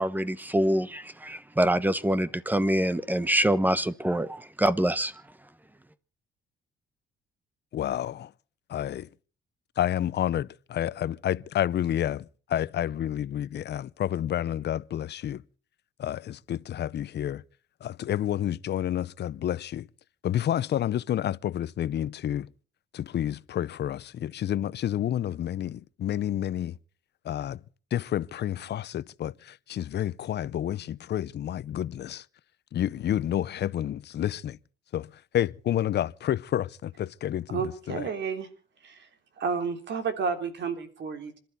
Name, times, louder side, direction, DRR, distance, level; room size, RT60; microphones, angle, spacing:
voice 1, 0.0-5.2, right 1 dB, 10° right, 1.1 m, -25 dB
voice 2, 7.7-8.3 8.7-9.1 9.8-12.2 12.5-15.4 16.0-17.4 17.8-19.8 20.2-22.5 22.9-26.7 27.3-27.6 27.9-29.3 29.7-32.2 32.7-34.6 34.9-35.1 35.3-37.6 37.9-38.0, left 11 dB, 60° left, 0.7 m, -29 dB
voice 3, 37.5-38.5 38.8-39.1 39.4-41.4, right 5 dB, 65° right, 3.3 m, -31 dB
26.5 x 12.5 x 4.1 m
cardioid pair, 90°, 20 cm